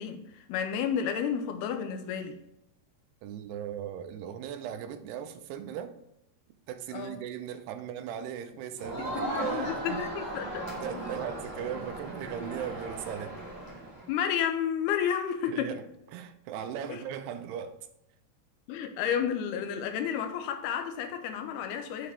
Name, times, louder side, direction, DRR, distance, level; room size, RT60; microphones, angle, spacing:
voice 1, 0.0-2.4 6.9-7.1 9.1-10.7 14.1-15.8 16.9-17.0 18.7-22.1, left 8 dB, 80° left, 2.7 m, -31 dB
voice 2, 3.2-6.0 6.7-10.0 10.8-13.4 15.5-15.8 16.1-17.9, right 9 dB, 90° right, 2.8 m, -38 dB
Crowd, 8.8-14.1, right 1 dB, 10° left, 0.9 m, -37 dB
8.4 x 4.8 x 3.5 m
omnidirectional pair, 4.6 m